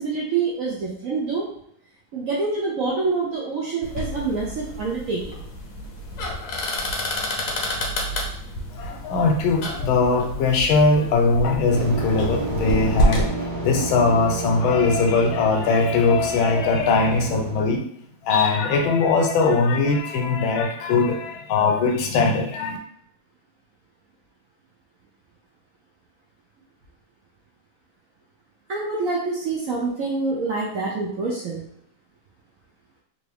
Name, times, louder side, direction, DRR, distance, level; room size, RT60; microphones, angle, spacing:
voice 1, 0.0-1.4 2.1-5.4 28.7-31.6, right 4 dB, 80° right, -4 dB, 0.7 m, -26 dB
sound 1, 3.8-13.3, equal, 60° left, 0.8 m, -28 dB
voice 2, 8.8-13.3 13.6-17.8 18.2-22.8, left 3 dB, 85° left, 2 dB, 1.4 m, -20 dB
sound 2, 11.7-17.8, right 2 dB, 60° right, 1.3 m, -30 dB
3.5 x 2.5 x 3.4 m, 0.69 s
omnidirectional pair, 2.2 m